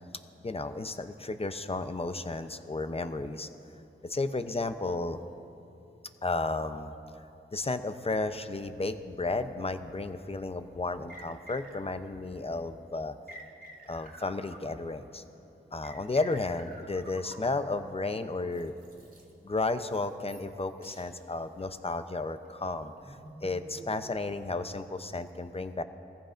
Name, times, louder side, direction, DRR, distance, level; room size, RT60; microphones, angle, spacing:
voice 1, 0.4-3.5 4.0-5.2 6.2-6.9 7.5-13.1 13.9-15.2 15.7-18.7 19.4-23.2 23.4-25.8, left 3 dB, 30° left, 9 dB, 0.7 m, -33 dB
sound 1, 10.1-10.2 11.1-12.2 13.3-15.1 15.8-17.9 18.5-19.3 19.9-20.6 20.8-21.1 21.6-21.8 22.4-24.4, right 1 dB, 40° right, 2.2 m, -50 dB
20.5 x 15.0 x 2.6 m, 2.8 s
cardioid pair, 55°, 21 cm